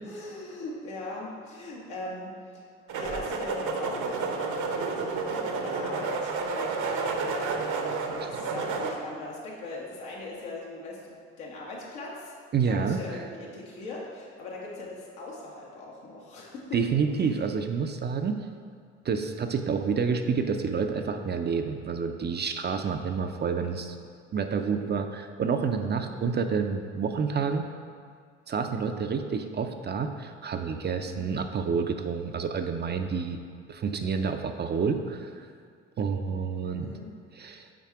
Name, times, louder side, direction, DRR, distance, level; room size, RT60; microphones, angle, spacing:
voice 1, 0.0-2.7 2.9-12.3 12.6-16.8 17.1-17.3 26.0-26.3 31.0-31.2 36.7-37.1, left 2 dB, 80° left, -4 dB, 1.4 m, -40 dB
sound 1, 2.9-8.9, right 4 dB, 60° right, 0.8 m, -30 dB
voice 2, 12.5-13.0 16.7-18.4 19.0-24.0 24.3-27.7 28.5-33.4 33.7-35.5 36.0-36.9 37.4-37.7, right 5 dB, 30° right, 6 dB, 0.5 m, -29 dB
5.9 x 4.1 x 4.6 m, 2.1 s
hypercardioid pair, 55°, 34 cm